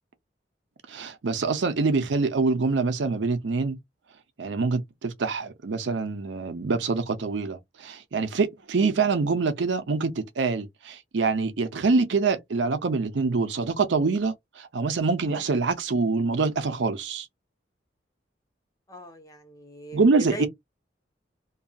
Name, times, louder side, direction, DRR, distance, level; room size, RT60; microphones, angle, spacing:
voice 1, 0.9-3.8 4.4-17.3 19.9-20.5, right 4 dB, 80° right, 0.6 m, -25 dB
voice 2, 18.9-20.5, right 2 dB, 20° left, 0.8 m, -38 dB
2.7 x 2.3 x 2.3 m
head